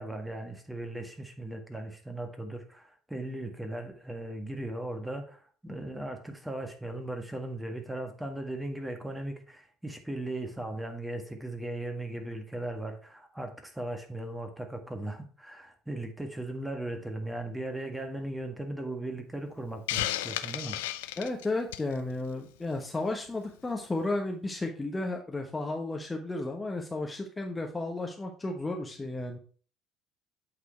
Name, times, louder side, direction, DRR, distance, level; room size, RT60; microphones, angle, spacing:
voice 1, 0.0-20.8, right 1 dB, 5° right, 1.7 m, -37 dB
Hiss, 19.9-21.9, left 14 dB, 75° left, 0.4 m, -33 dB
voice 2, 21.2-29.4, left 2 dB, 20° left, 1.1 m, -33 dB
8.4 x 4.2 x 4.5 m
figure-of-eight pair, 55°, 0 cm